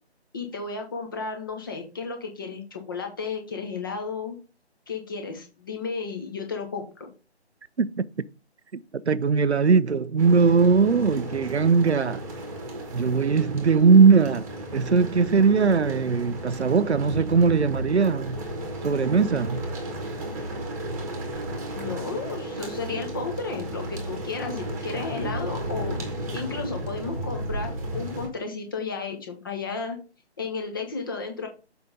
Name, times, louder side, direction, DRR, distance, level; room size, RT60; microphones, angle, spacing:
voice 1, 0.3-4.3 4.9-7.1 21.7-26.0 26.3-30.0 30.4-31.5, left 4 dB, 20° left, 1.0 m, -33 dB
voice 2, 7.8-8.1 9.1-12.2 12.9-18.4 18.8-19.6, right 5 dB, 75° right, 0.7 m, -20 dB
sound 1, 10.2-28.3, right 1 dB, 15° right, 1.4 m, -34 dB
7.0 x 5.1 x 3.8 m
figure-of-eight pair, 150°, 34 cm